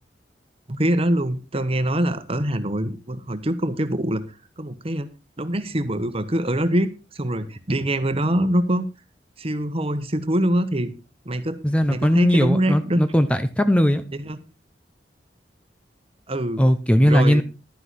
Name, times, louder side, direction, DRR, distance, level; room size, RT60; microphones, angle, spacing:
voice 1, 0.7-4.2 4.6-5.1 5.4-8.8 9.4-10.9 11.2-11.6 11.9-13.0 14.1-14.4 16.3-16.6 17.0-17.4, right 1 dB, 35° right, 11 dB, 1.2 m, -24 dB
voice 2, 11.6-14.0 16.6-17.4, equal, 5° left, 10 dB, 0.6 m, -18 dB
12.0 x 9.8 x 4.1 m, 0.29 s
head